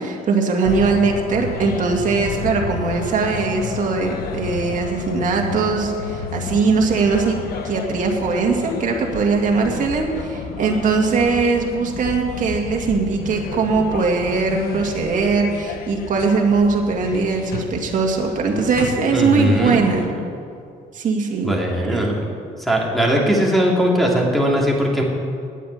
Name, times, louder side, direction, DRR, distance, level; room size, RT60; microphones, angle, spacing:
voice 1, 0.0-7.4 7.6-20.1 20.9-21.5 21.8-22.2, right 4 dB, 50° right, 1 dB, 2.1 m, -20 dB
sound 1, 0.6-20.0, left 6 dB, 65° left, 1.1 m, -31 dB
voice 2, 19.1-20.1 21.4-22.3 22.6-25.0, equal, ahead, -2 dB, 2.6 m, -19 dB
9.4 x 8.4 x 9.5 m, 2.4 s
cardioid pair, 110°, 17 cm